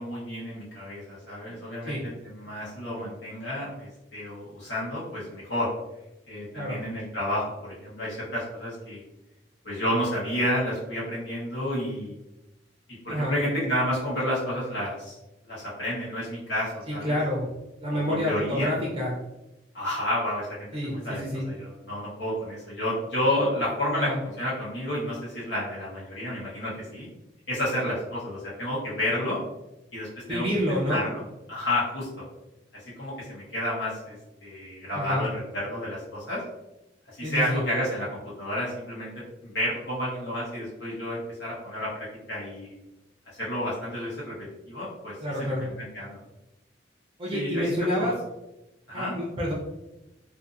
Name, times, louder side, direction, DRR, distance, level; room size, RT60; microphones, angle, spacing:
voice 1, 0.0-5.7 6.3-9.0 9.6-12.1 13.0-15.2 15.4-17.2 17.9-18.7 19.7-24.1 24.4-27.1 27.5-29.4 29.9-31.2 31.5-32.1 33.0-34.1 34.4-36.4 37.2-39.1 39.4-42.7 43.4-45.1 45.4-46.2 47.3-47.7 48.0-48.1 48.9-49.2, left 1 dB, 85° left, -7 dB, 1.0 m, -30 dB
voice 2, 16.9-17.5 17.8-19.1 20.7-21.4 24.0-24.2 30.3-31.0 34.9-35.2 37.2-37.6 45.2-45.6 47.2-48.1 48.9-49.5, equal, 30° right, -4 dB, 0.5 m, -28 dB
2.6 x 2.5 x 2.4 m, 0.96 s
head